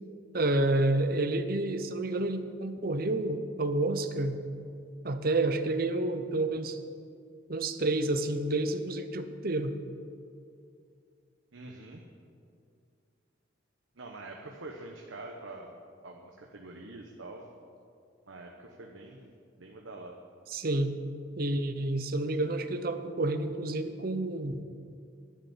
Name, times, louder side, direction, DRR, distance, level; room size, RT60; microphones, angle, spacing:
voice 1, 0.3-4.4 5.0-6.8 7.5-9.7 20.5-21.0 21.4-24.6, right 2 dB, 50° right, 9 dB, 0.8 m, -29 dB
voice 2, 11.5-12.0 14.0-15.7 16.0-17.5 18.3-20.1, right 2 dB, 85° right, 1 dB, 1.1 m, -45 dB
12.0 x 7.1 x 9.1 m, 2.3 s
head